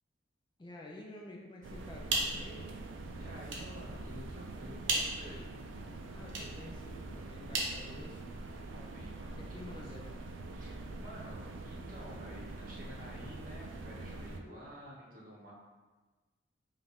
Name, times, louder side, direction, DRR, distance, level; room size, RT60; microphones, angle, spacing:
voice 1, 0.6-2.8 6.1-8.2 9.5-10.0, left 1 dB, 25° left, -1 dB, 0.4 m, -50 dB
sound 1, 1.6-14.4, right 2 dB, 80° right, 0.4 m, -44 dB
sound 2, 1.8-8.6, right 2 dB, 65° right, 0.8 m, -39 dB
voice 2, 3.1-5.5 8.7-9.9 10.2-15.5, equal, 45° right, -4 dB, 1.1 m, -51 dB
5.0 x 2.5 x 3.5 m, 1.2 s
head